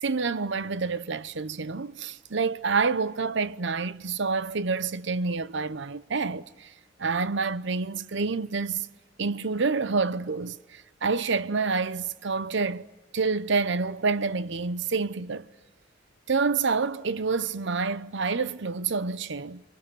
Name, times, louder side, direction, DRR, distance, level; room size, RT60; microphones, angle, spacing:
voice 1, 0.0-6.7 7.0-8.9 9.2-12.9 13.1-15.5 16.3-19.6, right 4 dB, 70° right, 0.8 m, -28 dB
26.0 x 24.5 x 9.2 m
head